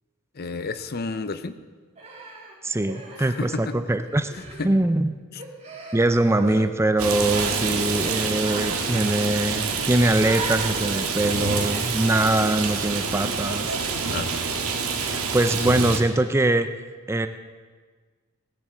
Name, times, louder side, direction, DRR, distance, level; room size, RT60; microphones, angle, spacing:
voice 1, 0.3-1.6 3.2-3.8 4.3-4.7 5.3-5.4 6.4-6.7 7.7-8.0 14.1-14.4, left 3 dB, 45° left, 12 dB, 0.7 m, -32 dB
Human voice, 2.0-3.8 4.1-4.7 5.4-6.6 7.3-7.6 8.4-8.6 8.9-9.2 10.2-10.7 11.5-12.1 13.1-13.4, right 3 dB, 30° right, 3.2 m, -38 dB
voice 2, 2.6-4.3 4.6-5.1 5.9-13.7 15.0-16.7 17.1-17.3, right 1 dB, 10° right, 10 dB, 0.5 m, -22 dB
Rain, 7.0-16.0, right 5 dB, 70° right, 1.8 m, -27 dB
19.0 x 7.7 x 7.6 m, 1.5 s
head